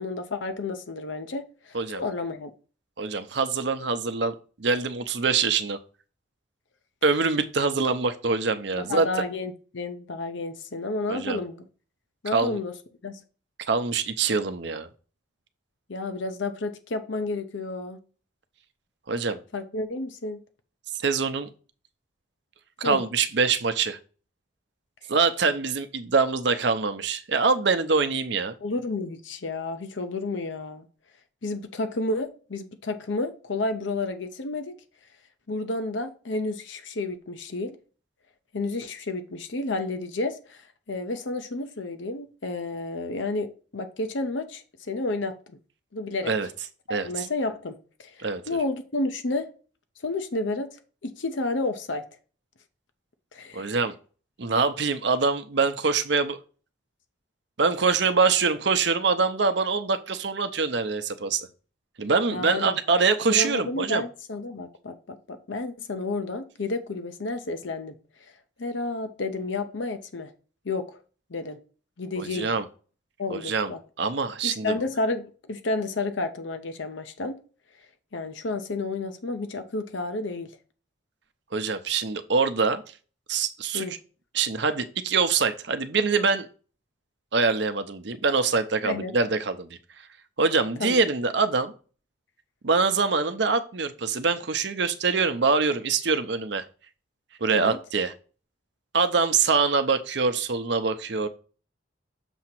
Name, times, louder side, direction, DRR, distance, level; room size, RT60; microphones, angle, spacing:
voice 1, 0.0-2.5 8.7-11.6 12.2-12.7 13.0-13.2 15.9-18.0 19.5-20.4 22.8-23.0 28.6-30.9 31.4-34.8 35.5-37.8 38.5-45.3 45.9-46.3 47.0-49.5 50.0-52.0 53.3-53.7 62.3-62.8 63.3-68.3 68.6-70.3 70.6-71.0 71.3-71.6 72.0-72.5 73.2-73.8 74.4-77.4 78.1-80.5 83.7-83.9 88.8-89.1 90.8-91.0 97.5-97.8, left 2 dB, 75° left, 0.7 m, -31 dB
voice 2, 3.0-5.8 7.0-9.1 11.1-11.4 12.3-12.6 13.7-14.9 19.1-19.4 20.9-21.5 22.8-24.0 25.1-28.5 46.2-46.5 46.9-47.3 48.2-48.4 53.5-53.9 54.4-56.4 57.6-61.5 62.0-64.0 72.2-72.7 73.3-73.7 74.0-74.8 81.5-82.9 83.3-83.9 84.3-86.5 87.3-90.1 90.4-91.7 92.6-96.6 97.4-98.1 98.9-101.3, right 4 dB, 65° right, 0.7 m, -24 dB
7.0 x 2.9 x 5.9 m
head